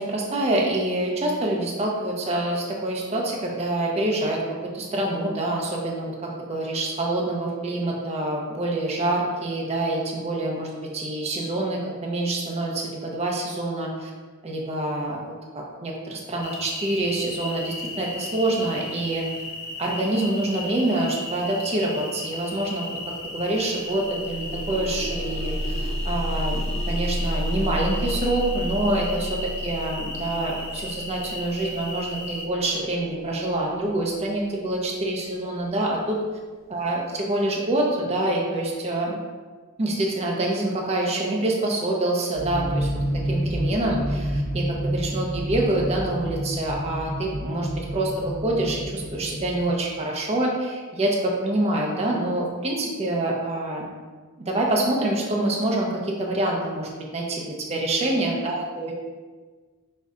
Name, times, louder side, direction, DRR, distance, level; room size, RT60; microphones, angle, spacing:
voice 1, 0.0-4.4 4.7-14.1 14.4-19.2 19.8-22.9 23.3-36.2 36.7-39.1 39.8-42.9 43.3-53.8 54.4-58.9, right 1 dB, 30° right, -2 dB, 0.5 m, -26 dB
sound 1, 16.4-32.5, left 2 dB, 45° left, 0.5 m, -36 dB
sound 2, 23.8-34.5 35.3-35.4 35.9-36.0, equal, ahead, 0.9 m, -31 dB
sound 3, 42.4-49.7, equal, 60° right, 0.8 m, -29 dB
4.8 x 2.1 x 3.7 m, 1.4 s
head